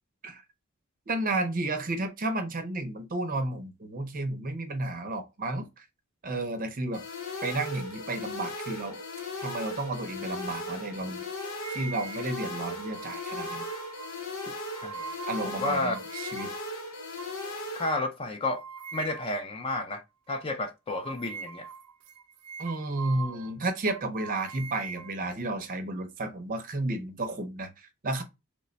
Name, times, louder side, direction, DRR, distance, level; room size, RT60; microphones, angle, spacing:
voice 1, 1.1-5.8 6.2-7.0 7.4-9.0 9.4-11.2 11.7-13.7 15.3-16.5 22.6-28.2, right 2 dB, 40° right, 0.6 m, -32 dB
sound 1, 6.9-17.9, left 2 dB, 80° left, 1.0 m, -37 dB
sound 2, 11.6-16.7 17.2-17.4 17.8-18.0 18.5-19.4 19.7-19.9 20.3-20.4 20.9-23.6 23.9-25.7, right 6 dB, 90° right, 0.4 m, -42 dB
voice 2, 15.5-16.0 17.7-18.6 18.9-20.0 20.3-21.7, left 2 dB, 25° left, 0.4 m, -31 dB
3.1 x 2.1 x 3.9 m
head